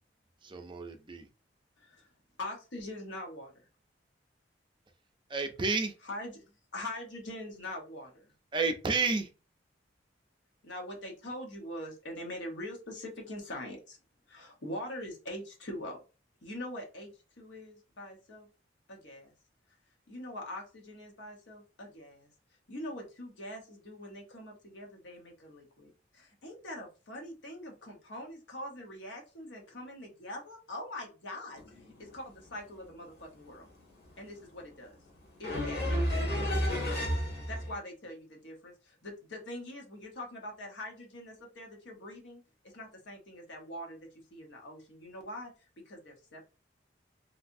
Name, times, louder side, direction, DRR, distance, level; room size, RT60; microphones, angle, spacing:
voice 1, 0.4-1.3 5.3-5.9 8.5-9.3, right 4 dB, 25° right, 0.5 m, -31 dB
voice 2, 2.4-3.5 6.0-6.4 6.7-8.1 10.6-14.0 14.3-16.0 16.4-17.1 17.4-18.5 18.9-19.3 20.1-22.3 22.7-31.6 32.0-33.7 34.2-34.9 35.4-35.8 36.1-37.0 37.5-42.4 42.7-44.0 44.3-45.5 45.9-46.4, left 1 dB, 90° left, 1.0 m, -43 dB
voice 3, 31.6-32.2 33.7-34.3 35.1-37.7, equal, 60° left, 1.5 m, -33 dB
3.2 x 2.7 x 2.6 m
head